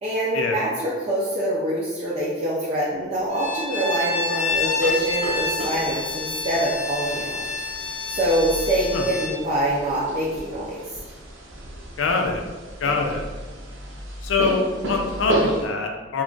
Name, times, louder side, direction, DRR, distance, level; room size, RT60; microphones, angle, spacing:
voice 1, 0.0-7.4 8.1-10.8, right 1 dB, 35° right, -7 dB, 0.4 m, -25 dB
Bowed string instrument, 3.3-9.4, left 3 dB, 50° left, 0.6 m, -28 dB
sound 1, 4.5-15.6, right 1 dB, 90° right, 0.6 m, -33 dB
voice 2, 12.0-12.4 12.8-13.2 14.2-16.2, left 4 dB, 90° left, 3 dB, 0.4 m, -24 dB
2.4 x 2.2 x 3.8 m, 1.3 s
head